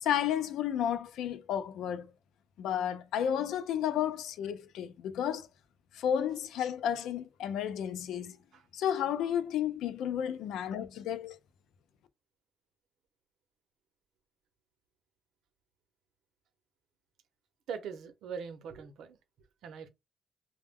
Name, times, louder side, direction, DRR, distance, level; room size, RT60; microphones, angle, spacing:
voice 1, 0.0-2.1 2.6-5.5 5.9-8.4 8.7-11.4, left 9 dB, 85° left, 0.4 m, -32 dB
voice 2, 17.7-19.2 19.6-19.9, right 6 dB, 75° right, 0.6 m, -41 dB
2.1 x 2.1 x 3.5 m
cardioid pair, 140°, 0 cm